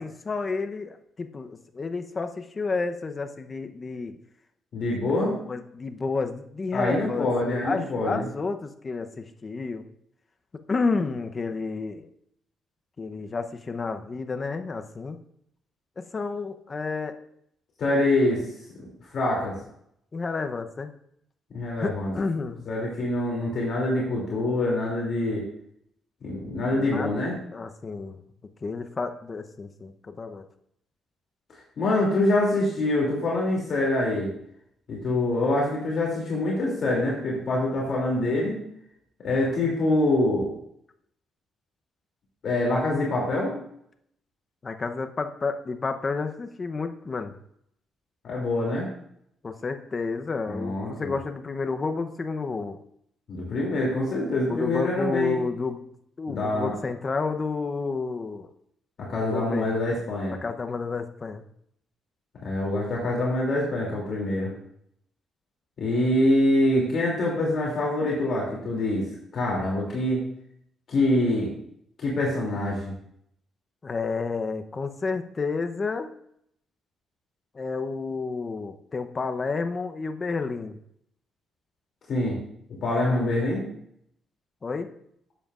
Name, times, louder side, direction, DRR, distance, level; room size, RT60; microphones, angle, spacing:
voice 1, 0.0-4.2 4.8-7.3 7.6-9.8 10.7-12.1 13.0-15.2 16.0-17.2 20.1-20.9 21.8-22.7 26.7-27.1 27.5-28.2 28.6-30.5 44.6-47.3 49.4-52.8 54.5-55.8 56.2-58.5 59.2-59.8 60.4-61.4 73.8-76.1 77.5-80.8 83.0-83.3 84.6-84.9, left 4 dB, 35° left, 7 dB, 0.8 m, -30 dB
voice 2, 4.7-5.4 6.7-8.2 17.8-18.4 19.1-19.6 21.5-22.1 22.7-25.4 26.2-27.4 31.8-34.3 34.9-38.6 39.2-40.5 42.4-43.5 48.2-48.9 50.5-51.1 53.3-55.4 56.3-56.7 59.0-60.3 62.4-64.5 65.8-69.0 69.3-70.2 70.9-71.5 72.0-72.9 82.1-82.4 82.8-83.6, left 1 dB, 55° left, -3 dB, 2.8 m, -25 dB
12.0 x 7.9 x 2.5 m, 0.71 s
cardioid pair, 90°, 0 cm